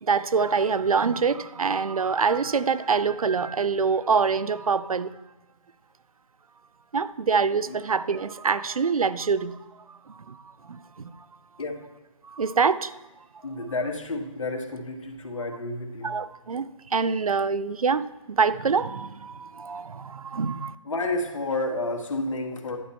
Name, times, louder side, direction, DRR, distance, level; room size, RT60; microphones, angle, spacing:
voice 1, 0.0-5.1 6.9-11.1 12.2-13.0 16.0-20.8, right 5 dB, 85° right, 0.5 m, -25 dB
voice 2, 13.4-16.2 20.8-22.8, left 2 dB, 65° left, 1.6 m, -30 dB
11.0 x 5.4 x 4.4 m
figure-of-eight pair, 150°, 18 cm